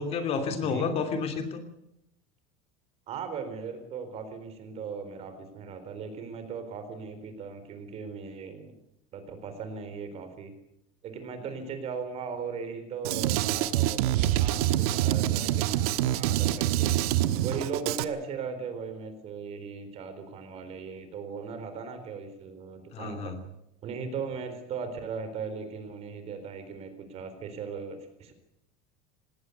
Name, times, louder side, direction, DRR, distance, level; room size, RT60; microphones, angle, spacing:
voice 1, 0.0-1.6 22.9-23.4, left 5 dB, 35° left, 7 dB, 2.8 m, -30 dB
voice 2, 3.1-8.7 9.1-10.5 11.0-16.9 17.4-23.3 23.8-28.3, right 5 dB, 35° right, 8 dB, 4.1 m, -38 dB
Drum kit, 13.0-18.0, right 13 dB, 85° right, 1.3 m, -26 dB
19.5 x 17.5 x 8.1 m, 0.82 s
cardioid pair, 165°, 19 cm